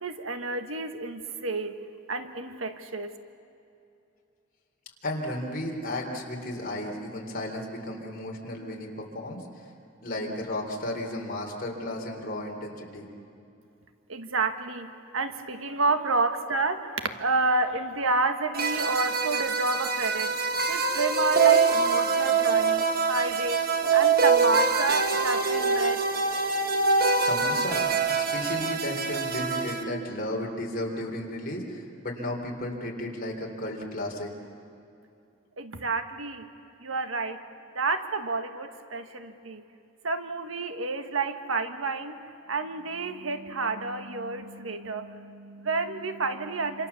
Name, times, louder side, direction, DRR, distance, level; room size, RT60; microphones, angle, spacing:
voice 1, 0.0-1.7 2.1-3.1 14.1-14.9 15.1-20.3 20.7-23.6 23.9-26.0 35.6-36.4 36.8-37.4 37.7-39.6 40.0-42.2 42.5-46.9, right 3 dB, 80° right, 8 dB, 1.5 m, -29 dB
voice 2, 5.0-9.7 10.0-13.1 15.1-15.2 26.7-26.9 27.3-27.9 28.2-34.3, left 1 dB, 45° left, 1 dB, 3.8 m, -34 dB
sound 1, 18.5-29.8, right 4 dB, 50° right, 1.7 m, -24 dB
27.5 x 27.0 x 7.1 m, 2.7 s
head